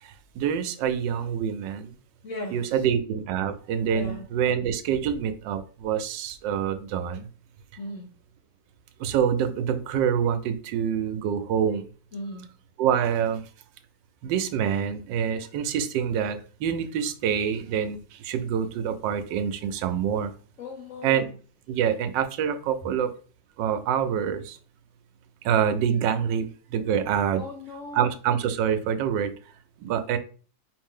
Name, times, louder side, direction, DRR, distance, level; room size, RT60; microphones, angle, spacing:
voice 1, 0.0-1.9 2.5-7.3 9.0-11.9 12.8-13.4 14.2-20.3 21.0-21.2 21.7-23.1 23.6-24.6 25.4-27.4 27.9-29.3 29.8-30.2, right 8 dB, 80° right, 8 dB, 1.2 m, -26 dB
voice 2, 2.2-2.9 3.9-4.3 7.8-8.1 12.1-12.5 20.6-21.3 27.4-28.2, left 2 dB, 60° left, 2 dB, 0.8 m, -38 dB
4.8 x 2.6 x 3.7 m, 0.39 s
omnidirectional pair, 2.0 m